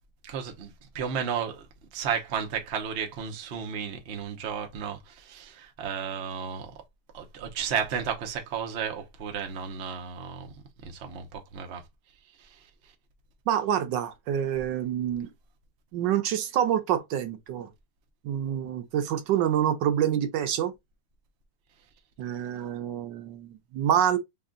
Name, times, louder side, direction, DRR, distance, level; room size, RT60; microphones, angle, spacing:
voice 1, 0.2-1.6 1.9-6.7 7.1-10.5 10.8-11.8 12.4-12.6, right 7 dB, 50° right, 0.8 m, -33 dB
voice 2, 13.5-15.3 15.9-17.7 18.2-20.7 22.2-24.2, right 10 dB, 80° right, 1.3 m, -27 dB
3.6 x 2.4 x 3.7 m
omnidirectional pair, 1.9 m